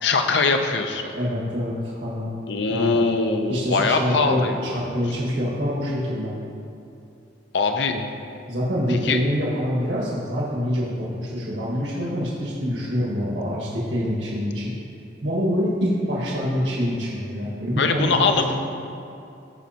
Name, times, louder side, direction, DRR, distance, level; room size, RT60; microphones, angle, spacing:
voice 1, 0.0-1.1 2.5-4.8 7.5-8.0 8.9-9.2 17.8-18.4, left 4 dB, 65° left, 6 dB, 0.6 m, -22 dB
voice 2, 1.1-2.3 2.7-3.0 3.5-6.3 7.9-8.0 8.5-14.7 15.2-18.6, equal, 75° right, -5 dB, 1.7 m, -25 dB
15.0 x 5.3 x 2.9 m, 2.6 s
head